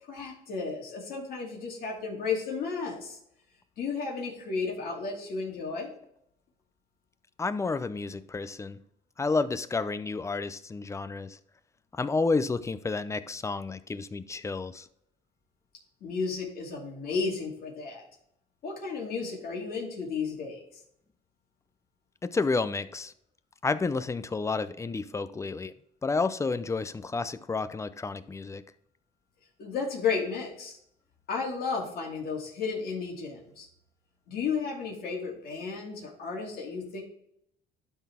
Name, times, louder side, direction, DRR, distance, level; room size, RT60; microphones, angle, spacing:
voice 1, 0.1-3.2 3.8-5.9 16.0-18.0 18.6-20.6 29.6-30.8 31.3-33.7 34.3-37.0, left 5 dB, 65° left, -1 dB, 2.5 m, -33 dB
voice 2, 7.4-8.8 9.2-11.4 11.9-14.9 22.2-23.1 23.6-25.7 26.0-28.6, left 4 dB, 15° left, 13 dB, 0.4 m, -30 dB
12.0 x 4.0 x 3.5 m, 0.72 s
cardioid pair, 110°, 17 cm